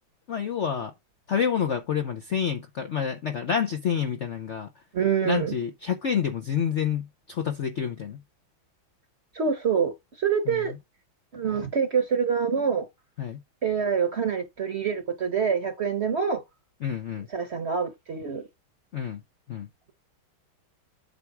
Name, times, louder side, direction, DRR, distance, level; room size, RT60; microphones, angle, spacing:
voice 1, 0.3-0.9 1.3-4.7 5.2-8.2 10.5-10.6 13.2-13.4 16.8-17.3 18.9-19.2 19.5-19.7, left 8 dB, 90° left, 0.6 m, -28 dB
voice 2, 4.9-5.5 9.3-9.9 10.2-10.7 11.3-12.9 13.6-16.4 17.3-18.5, right 6 dB, 45° right, 0.9 m, -26 dB
8.0 x 3.4 x 5.9 m
omnidirectional pair, 2.2 m